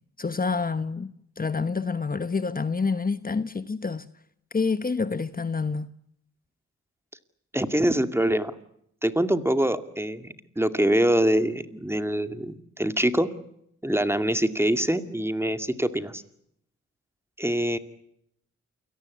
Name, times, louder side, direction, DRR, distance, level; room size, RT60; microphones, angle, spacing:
voice 1, 0.2-4.1 4.5-5.9, left 4 dB, 30° left, 1.2 m, -28 dB
voice 2, 7.5-8.5 9.0-13.3 13.8-16.2 17.4-17.8, right 1 dB, 10° right, 2.3 m, -24 dB
28.5 x 18.0 x 9.7 m
cardioid pair, 70°, 30 cm